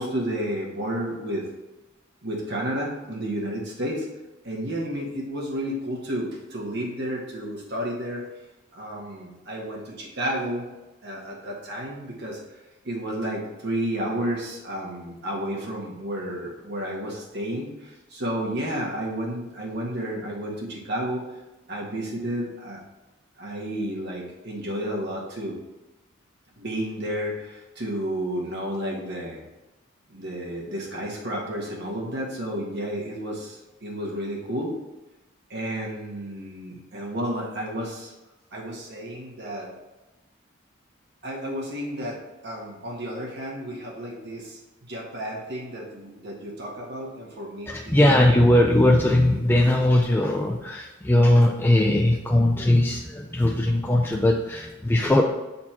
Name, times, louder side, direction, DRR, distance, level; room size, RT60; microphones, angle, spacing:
voice 1, 0.0-1.4 2.2-4.1 4.4-8.2 8.7-10.6 11.0-12.4 12.8-21.4 21.7-22.8 23.4-25.5 26.6-29.4 30.1-34.7 35.5-38.1 38.5-39.7 41.2-44.6 44.9-48.3, equal, 55° right, -2 dB, 1.6 m, -31 dB
voice 2, 47.7-55.2, left 1 dB, 10° left, 0 dB, 0.4 m, -19 dB
7.7 x 4.3 x 4.3 m, 1.0 s
head